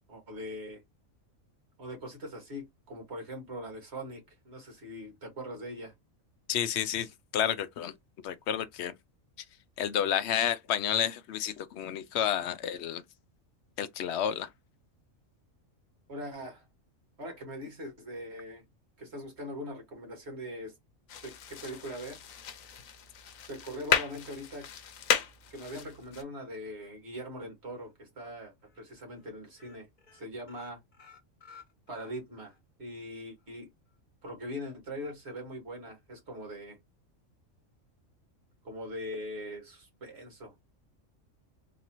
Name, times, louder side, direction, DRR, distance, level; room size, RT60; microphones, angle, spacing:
voice 1, 0.1-0.8 1.8-5.9 16.1-16.6 17.2-18.6 19.0-20.7 21.2-22.2 23.5-24.7 25.5-29.9 30.1-30.8 31.9-33.7 34.2-36.8 38.6-40.5, equal, 55° right, 1.9 m, -41 dB
voice 2, 6.5-7.9 8.2-8.9 9.8-13.0 13.8-14.5, left 9 dB, 65° left, 0.8 m, -30 dB
sound 1, 21.1-26.2, left 8 dB, 80° left, 1.1 m, -34 dB
sound 2, 27.7-28.3 28.7-28.8 29.1-29.3 29.6-32.6 32.9-33.0 33.4-33.5, left 5 dB, 35° left, 1.3 m, -55 dB
3.9 x 2.7 x 2.9 m
omnidirectional pair, 1.4 m